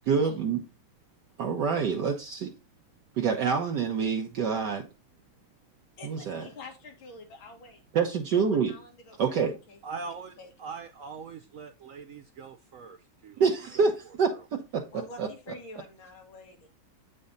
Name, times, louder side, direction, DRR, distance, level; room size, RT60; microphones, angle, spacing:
voice 1, 0.1-0.6 1.4-2.5 3.1-4.8 6.0-6.5 7.9-8.7 9.2-9.5 13.4-15.3, right 5 dB, 65° right, 1.4 m, -27 dB
voice 2, 6.0-7.8 8.3-9.8 10.1-10.7 14.9-16.7, left 2 dB, 90° left, 2.5 m, -48 dB
voice 3, 9.8-13.4 13.7-13.9, right 5 dB, 85° right, 0.7 m, -42 dB
8.3 x 5.5 x 3.8 m
omnidirectional pair, 2.1 m